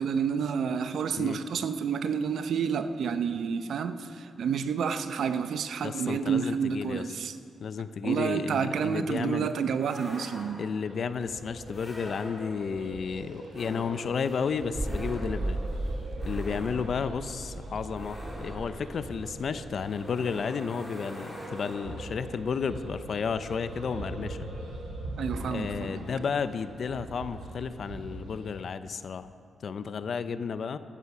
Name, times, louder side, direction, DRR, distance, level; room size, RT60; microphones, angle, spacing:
voice 1, 0.0-7.4 8.0-10.6 25.2-26.1, right 6 dB, 70° right, 10 dB, 0.7 m, -29 dB
voice 2, 5.8-7.0 7.6-9.5 10.6-15.6 16.2-24.5 25.5-29.3 29.6-30.8, left 6 dB, 55° left, 12 dB, 0.6 m, -32 dB
sound 1, 9.8-10.9 11.7-12.8 13.5-22.2, equal, 10° left, 3.9 m, -45 dB
sound 2, 10.8-28.6, right 1 dB, 90° right, 3.4 m, -42 dB
sound 3, 14.7-19.9, right 1 dB, 20° right, 0.6 m, -36 dB
14.0 x 11.0 x 6.0 m, 2.6 s
cardioid pair, 100°, 0 cm